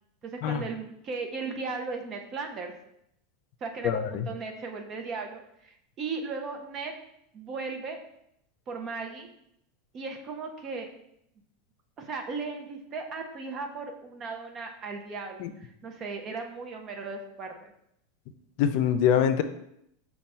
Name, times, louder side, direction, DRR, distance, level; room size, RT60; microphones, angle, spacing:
voice 1, 0.2-2.7 3.6-6.9 7.3-8.0 8.7-9.3 9.9-10.9 12.0-17.7, right 4 dB, 30° right, 4 dB, 0.5 m, -36 dB
voice 2, 3.8-4.3 15.4-15.5 18.6-19.4, left 9 dB, 55° left, 9 dB, 0.4 m, -24 dB
5.4 x 2.3 x 4.2 m, 0.76 s
supercardioid pair, 145°, 0 cm